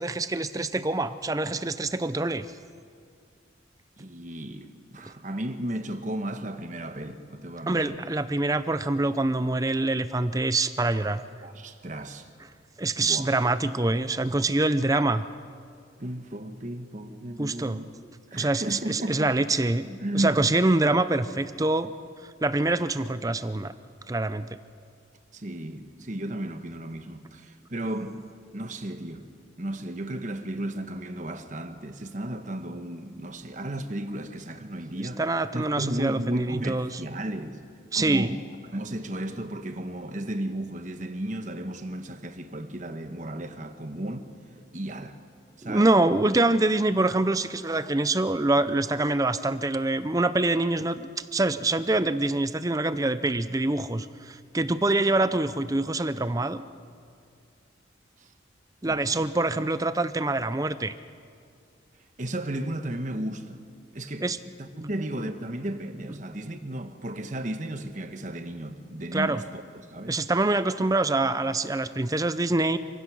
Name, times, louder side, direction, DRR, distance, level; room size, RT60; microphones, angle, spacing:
voice 1, 0.0-2.5 7.7-11.2 12.8-15.2 17.4-17.8 18.4-21.9 22.4-23.7 24.1-24.5 35.0-36.9 37.9-38.4 45.6-56.7 58.8-60.9 64.2-64.4 64.8-64.9 69.1-69.4 70.1-72.8, right 2 dB, 20° right, 0.5 m, -25 dB
voice 2, 4.0-8.0 11.4-12.3 13.0-13.3 16.0-17.9 18.3-19.3 20.0-20.6 25.3-28.2 28.5-29.3 29.6-35.2 35.5-37.6 37.9-38.4 38.7-44.3 44.7-45.2 45.6-46.1 58.2-58.3 58.8-59.2 62.2-63.6 63.9-64.3 64.6-69.4 69.9-70.2, right 1 dB, 40° right, 1.2 m, -34 dB
27.0 x 16.0 x 6.2 m
head